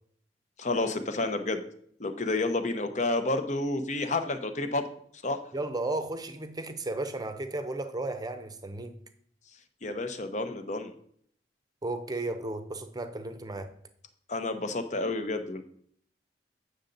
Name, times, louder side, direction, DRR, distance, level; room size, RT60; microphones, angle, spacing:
voice 1, 0.6-1.6 2.0-4.9 5.2-5.4 9.8-10.9 14.3-15.6, left 2 dB, 40° left, 0.8 m, -30 dB
voice 2, 5.5-8.9 11.8-13.7, right 2 dB, 20° right, 0.7 m, -34 dB
8.7 x 6.7 x 3.9 m
head